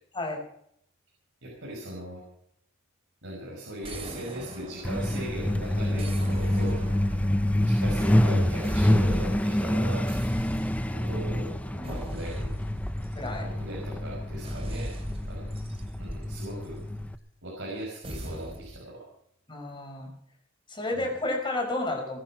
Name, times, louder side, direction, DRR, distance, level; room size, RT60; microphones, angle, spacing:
voice 1, 1.4-2.2 3.2-6.9 7.7-10.1 10.9-12.5 13.3-15.0 15.3-15.5 16.0-16.8 17.4-19.0 21.0-21.1, right 1 dB, 75° right, -3 dB, 5.7 m, -38 dB
sound 1, 3.8-5.4 6.0-8.3 8.6-9.5 10.1-11.1 11.8-13.7 14.4-16.9 18.0-18.8, equal, 30° right, 2.9 m, -40 dB
Truck, 4.8-17.2, left 1 dB, 5° left, 0.7 m, -27 dB
voice 2, 13.2-13.5 19.5-20.1 20.7-22.2, left 2 dB, 25° left, 1 dB, 5.1 m, -31 dB
20.5 x 10.0 x 5.9 m, 0.72 s
head